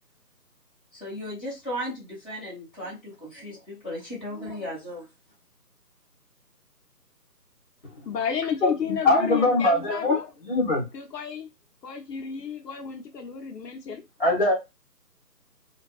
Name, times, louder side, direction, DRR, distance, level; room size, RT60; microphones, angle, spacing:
voice 1, 0.9-5.0, equal, 5° left, 1.1 m, -36 dB
voice 2, 8.1-10.3 10.9-11.5 11.8-14.0, left 7 dB, 75° left, 0.7 m, -32 dB
voice 3, 9.0-10.8 14.2-14.5, left 2 dB, 35° left, 0.7 m, -22 dB
2.6 x 2.2 x 2.3 m
figure-of-eight pair, 165°, 49 cm